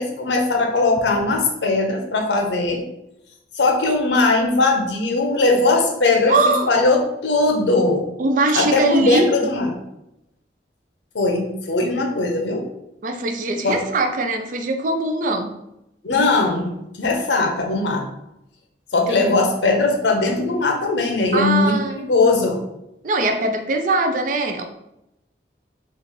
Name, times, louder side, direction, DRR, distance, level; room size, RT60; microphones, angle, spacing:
voice 1, 0.0-2.8 3.6-8.1 8.5-9.8 11.1-12.6 13.6-13.8 16.0-16.7 17.0-18.1 18.9-22.6, left 3 dB, 90° left, 3 dB, 0.7 m, -19 dB
voice 2, 6.3-6.7 8.2-9.3 13.0-15.6 19.2-19.3 21.3-22.1 23.0-24.6, right 2 dB, 45° right, 6 dB, 0.4 m, -21 dB
3.1 x 2.4 x 3.6 m, 0.86 s
head